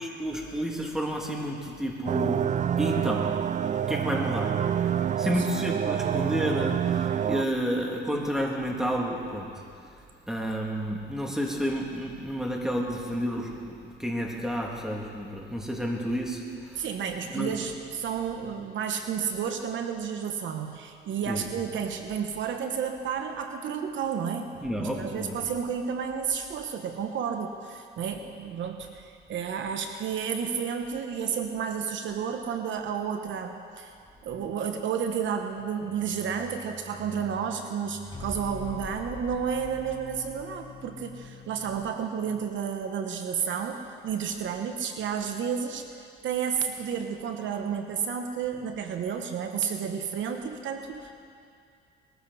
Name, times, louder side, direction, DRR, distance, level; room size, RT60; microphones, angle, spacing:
voice 1, 0.0-3.4 3.9-4.6 5.2-9.5 9.8-9.9 10.3-16.8 17.3-17.5 21.3-21.4 24.6-25.4, equal, 5° right, -1 dB, 2.6 m, -30 dB
sound 1, 2.1-7.5, right 9 dB, 40° right, 0.4 m, -27 dB
voice 2, 16.7-33.9 34.2-45.9 46.2-51.2, right 7 dB, 70° right, 5 dB, 1.1 m, -31 dB
sound 2, 35.8-42.4, left 3 dB, 25° left, 4.3 m, -44 dB
20.5 x 14.0 x 4.2 m, 2.3 s
cardioid pair, 90°, 20 cm